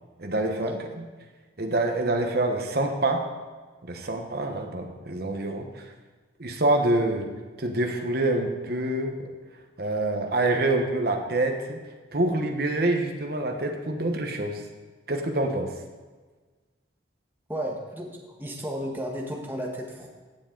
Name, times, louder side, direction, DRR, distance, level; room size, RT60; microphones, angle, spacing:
voice 1, 0.2-0.7 1.6-3.2 3.8-5.7 6.4-7.3 7.6-9.3 9.8-11.8 12.1-14.6 15.1-15.7, right 2 dB, 55° right, 3 dB, 1.1 m, -26 dB
voice 2, 17.5-20.1, equal, 10° right, -1 dB, 1.4 m, -33 dB
16.0 x 7.5 x 3.9 m, 1.4 s
head